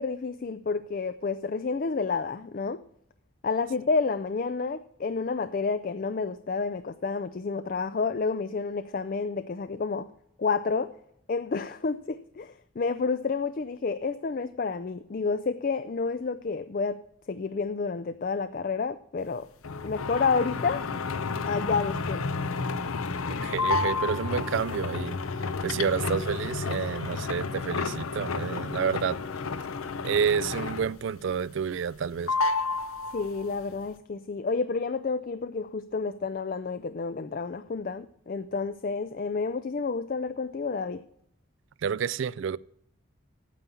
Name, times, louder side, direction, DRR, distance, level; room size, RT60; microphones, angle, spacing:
voice 1, 0.0-2.8 3.4-10.1 10.4-10.9 11.3-17.0 17.3-19.5 19.8-20.9 21.5-22.2 33.1-41.0, left 4 dB, 40° left, 0.4 m, -30 dB
sound 1, 19.6-31.1 31.4-32.0 32.3-33.6, left 4 dB, 90° left, 0.7 m, -31 dB
voice 2, 23.3-25.2 25.6-29.2 30.0-32.3 41.8-42.6, right 7 dB, 60° right, 0.3 m, -29 dB
9.1 x 7.0 x 8.4 m
head